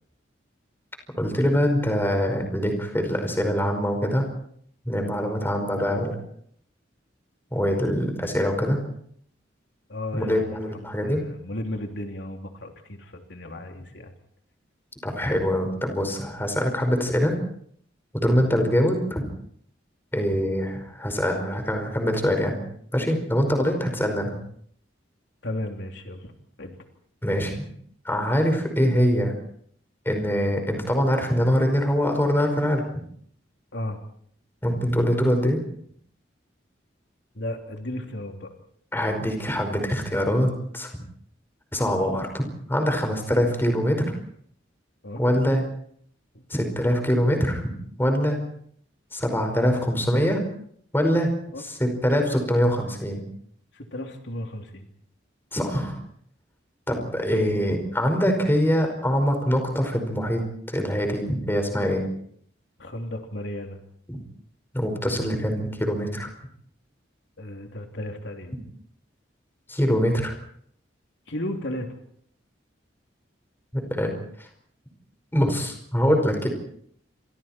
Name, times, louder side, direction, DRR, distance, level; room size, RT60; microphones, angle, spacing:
voice 1, 1.2-4.3 4.9-6.2 7.5-8.8 10.1-11.2 15.0-17.3 18.1-19.2 20.1-22.6 22.9-24.4 27.2-27.7 28.1-29.3 30.1-32.8 34.6-35.6 38.9-40.9 41.7-42.4 42.7-44.1 45.2-45.6 46.5-47.7 48.0-48.4 49.1-50.4 50.9-51.3 51.6-53.2 55.5-56.0 56.9-62.0 64.1-64.2 64.7-66.3 69.7-70.3 73.7-74.1 74.4-74.5 75.3-76.5, equal, 10° left, 4 dB, 5.2 m, -23 dB
voice 2, 9.9-14.1 25.4-26.3 26.6-26.8 33.7-34.0 37.3-38.5 45.0-45.2 46.3-46.4 51.5-51.6 53.7-54.9 62.8-63.8 67.4-68.6 71.3-71.9, left 1 dB, 70° left, 3 dB, 3.1 m, -34 dB
29.0 x 26.0 x 4.5 m, 0.65 s
head